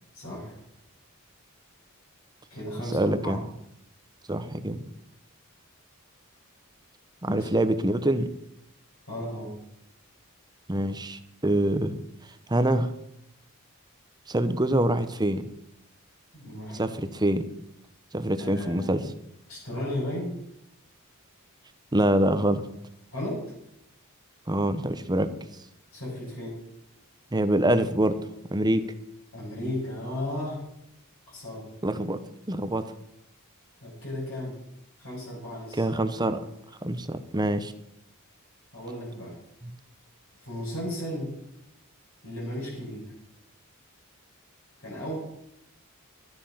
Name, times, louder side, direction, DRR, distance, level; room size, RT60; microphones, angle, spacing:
voice 1, 0.1-0.6 2.5-3.4 7.3-7.5 9.1-9.6 16.3-16.8 18.4-19.0 19.5-20.3 23.1-23.4 25.9-26.6 29.3-30.6 31.3-31.7 33.8-34.6 35.0-35.8 38.7-39.4 40.4-41.3 42.2-43.1 44.8-45.2, left 1 dB, 65° left, -7 dB, 6.9 m, -34 dB
voice 2, 2.9-3.4 4.3-4.8 7.2-8.3 10.7-12.0 12.5-12.9 14.3-15.4 16.7-17.5 18.1-19.0 21.9-22.6 24.5-25.3 27.3-28.2 28.5-28.8 31.8-32.2 32.5-32.9 35.8-36.4 36.8-37.7 39.6-39.7, right 1 dB, 20° right, 10 dB, 0.8 m, -25 dB
12.5 x 10.5 x 5.7 m, 0.79 s
head